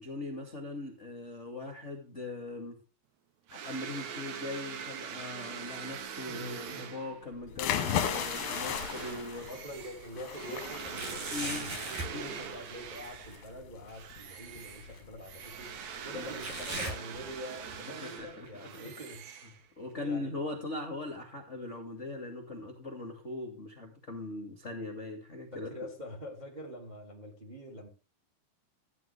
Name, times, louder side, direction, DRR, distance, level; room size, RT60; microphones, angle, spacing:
voice 1, 0.0-2.8 3.5-9.5 11.3-11.7 12.0-12.4 16.1-16.3 18.2-18.5 18.7-18.9 19.8-25.7, left 2 dB, 30° left, 1.4 m, -40 dB
sound 1, 3.5-13.5 13.9-19.9, right 7 dB, 80° right, 1.6 m, -43 dB
sound 2, 6.0-6.9 7.3-9.2 9.7-9.8 10.8-12.2 13.9-14.0 14.9-15.0 16.4-17.8 18.1-18.5 19.1-19.2 20.1-20.2, right 2 dB, 50° right, 7.1 m, -40 dB
sound 3, 7.5-16.8, left 10 dB, 70° left, 2.5 m, -37 dB
voice 2, 9.4-19.3 20.0-20.3 25.5-27.9, equal, 15° right, 2.0 m, -45 dB
14.5 x 10.5 x 3.4 m
omnidirectional pair, 5.3 m